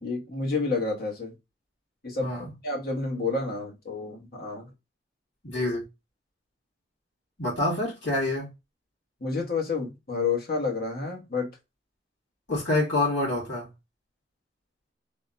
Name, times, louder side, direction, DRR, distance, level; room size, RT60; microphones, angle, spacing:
voice 1, 0.0-1.3 2.0-2.4 2.6-4.7 9.2-11.5, left 4 dB, 55° left, 1.1 m, -29 dB
voice 2, 2.2-2.5 5.4-5.8 7.4-8.5 12.5-13.7, left 2 dB, 80° left, 2.0 m, -27 dB
3.5 x 2.2 x 2.5 m
head